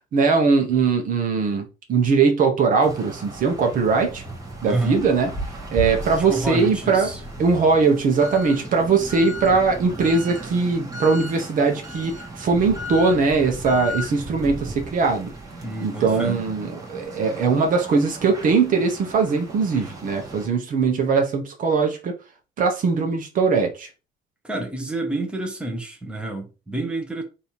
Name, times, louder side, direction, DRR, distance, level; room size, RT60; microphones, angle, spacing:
voice 1, 0.1-4.2 4.6-5.3 5.7-7.1 7.4-15.3 15.8-22.1 22.6-23.9, right 4 dB, 50° right, 1.0 m, -20 dB
sound 1, 2.8-20.5, equal, 20° right, 1.4 m, -37 dB
sound 2, 3.5-8.3 8.9-9.2 9.5-9.6 10.2-10.3, equal, 15° left, 1.9 m, -36 dB
voice 2, 4.6-5.0 6.3-7.2 15.6-16.4 24.4-27.2, right 2 dB, 5° right, 1.0 m, -28 dB
3.4 x 2.8 x 4.4 m
cardioid pair, 110°, 17 cm